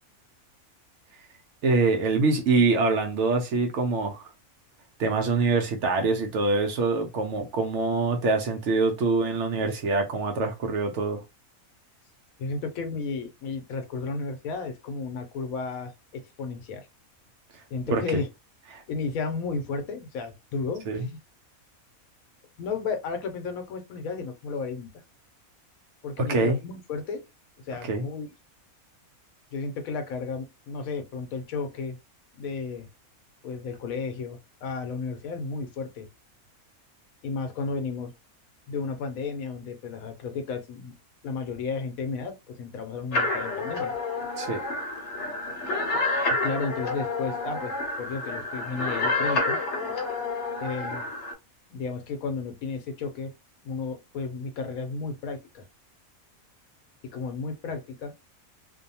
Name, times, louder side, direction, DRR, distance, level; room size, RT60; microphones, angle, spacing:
voice 1, 1.6-4.2 5.0-11.2 17.9-18.2 18.7-18.8 20.9-21.0 26.2-26.6 27.9-28.0 44.4-44.6, right 3 dB, 65° right, 0.8 m, -24 dB
voice 2, 12.4-16.9 17.7-18.3 18.9-21.2 22.6-24.9 26.0-27.2 27.6-28.3 29.5-32.0 32.3-32.9 33.4-36.1 37.2-38.1 38.7-41.0 41.2-43.9 46.4-49.6 50.6-51.1 51.7-53.3 53.6-55.6 57.1-58.1, left 4 dB, 80° left, 1.0 m, -33 dB
sound 1, 43.1-51.3, left 2 dB, 60° left, 0.9 m, -29 dB
2.6 x 2.2 x 2.7 m
omnidirectional pair, 1.5 m